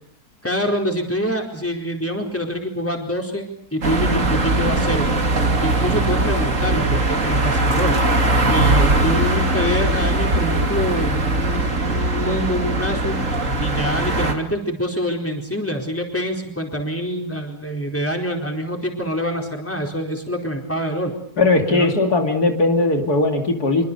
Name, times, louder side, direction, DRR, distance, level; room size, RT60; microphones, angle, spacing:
voice 1, 0.4-5.1 5.6-8.0 8.5-13.2 13.6-21.1 21.7-22.0, equal, 10° left, 2 dB, 4.4 m, -25 dB
sound 1, 3.8-14.3, right 2 dB, 55° right, 3.0 m, -20 dB
voice 2, 21.4-23.8, left 3 dB, 85° left, 4 dB, 3.3 m, -18 dB
25.5 x 24.0 x 7.0 m, 0.68 s
omnidirectional pair, 1.6 m